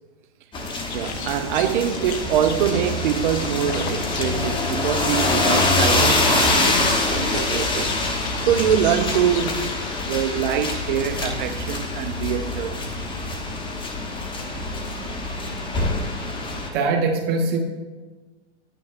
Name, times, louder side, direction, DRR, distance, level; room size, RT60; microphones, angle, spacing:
sound 1, 0.5-16.7, left 2 dB, 15° left, 0.9 m, -24 dB
sound 2, 0.9-9.8, left 7 dB, 65° left, 0.9 m, -37 dB
voice 1, 0.9-8.0 8.5-13.0, right 9 dB, 45° right, 0.5 m, -24 dB
voice 2, 16.7-17.6, right 4 dB, 30° right, 1.1 m, -22 dB
9.4 x 9.0 x 2.4 m
hypercardioid pair, 120°, 35 cm